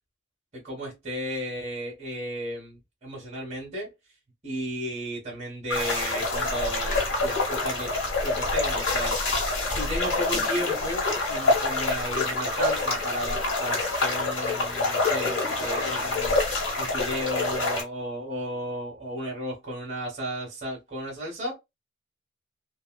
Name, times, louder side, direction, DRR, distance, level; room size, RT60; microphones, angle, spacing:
voice 1, 0.5-3.9 4.4-7.9 8.2-16.4 16.8-21.5, equal, 35° right, 1.3 m, -34 dB
sound 1, 5.7-17.8, left 2 dB, 85° left, 1.6 m, -26 dB
3.2 x 2.4 x 2.2 m
head